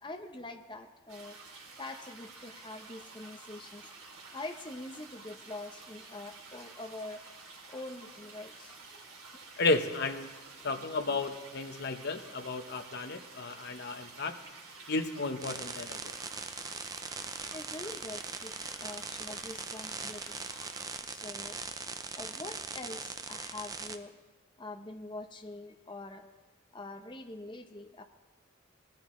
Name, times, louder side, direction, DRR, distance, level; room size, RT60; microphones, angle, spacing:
voice 1, 0.0-1.4 1.8-3.9 4.3-7.2 7.7-9.1 13.5-13.6 17.5-20.4 21.0-21.6 22.2-24.2 24.6-26.3 26.7-28.0, left 2 dB, 20° left, 4 dB, 0.8 m, -44 dB
sound 1, 1.1-21.0, right 3 dB, 80° right, 2.8 m, -51 dB
voice 2, 9.6-10.3 10.6-14.3 14.9-16.2, left 3 dB, 50° left, 7 dB, 0.9 m, -33 dB
sound 2, 15.4-24.0, right 4 dB, 15° right, 0.5 m, -41 dB
20.0 x 13.0 x 3.1 m, 1.2 s
head